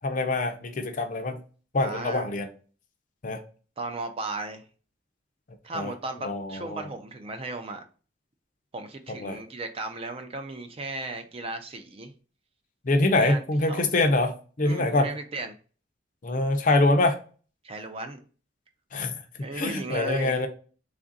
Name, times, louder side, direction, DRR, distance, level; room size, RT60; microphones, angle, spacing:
voice 1, 0.0-1.4 1.7-2.5 3.2-3.4 5.7-5.9 6.2-6.9 9.2-9.4 12.8-15.1 16.2-17.2 18.9-19.2 19.5-20.5, left 2 dB, 45° left, 0.5 m, -24 dB
voice 2, 1.8-2.3 3.8-4.6 5.6-7.8 8.7-12.1 13.2-13.8 14.6-15.5 17.6-18.2 19.4-20.5, right 2 dB, 30° right, 0.4 m, -35 dB
3.4 x 2.5 x 3.9 m
head